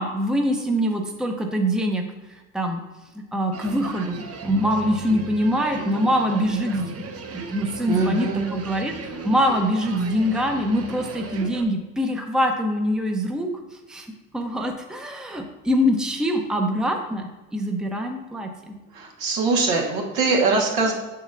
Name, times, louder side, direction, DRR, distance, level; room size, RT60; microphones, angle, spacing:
voice 1, 0.0-2.0 2.5-2.8 3.1-7.0 7.3-13.5 13.9-14.1 14.3-18.8, equal, ahead, 3 dB, 0.8 m, -24 dB
sound 1, 3.5-11.6, right 3 dB, 40° right, 0.8 m, -36 dB
voice 2, 7.9-8.5 18.9-20.9, right 3 dB, 70° right, -1 dB, 1.6 m, -22 dB
6.7 x 6.2 x 2.6 m, 1.2 s
hypercardioid pair, 60°, 39 cm